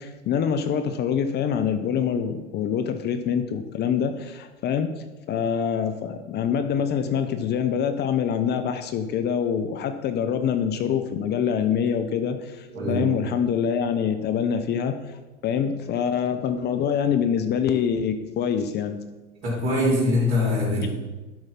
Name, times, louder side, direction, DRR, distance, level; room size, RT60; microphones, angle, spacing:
voice 1, 0.0-15.2 15.4-19.0 20.8-20.9, left 7 dB, 30° left, 8 dB, 0.7 m, -25 dB
voice 2, 12.7-13.0 19.4-20.9, left 1 dB, 65° right, -2 dB, 3.6 m, -23 dB
12.0 x 4.8 x 5.8 m, 1.1 s
hypercardioid pair, 95°, 35 cm